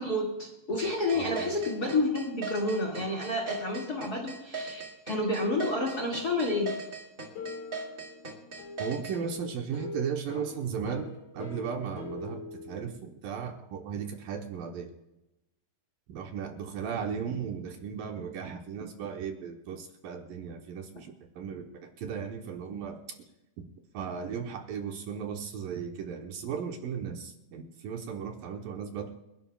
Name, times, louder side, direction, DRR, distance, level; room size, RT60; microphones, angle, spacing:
voice 1, 0.0-6.7, left 2 dB, 30° left, 1 dB, 2.0 m, -30 dB
sound 1, 0.8-9.2, right 4 dB, 25° right, 2.0 m, -38 dB
voice 2, 1.1-1.5 8.8-14.9 16.1-23.0 23.6-23.7 23.9-29.1, right 7 dB, 70° right, 3 dB, 2.5 m, -36 dB
sound 2, 7.3-12.9, left 4 dB, 50° left, 3.1 m, -43 dB
29.5 x 11.5 x 2.3 m, 0.94 s
omnidirectional pair, 4.5 m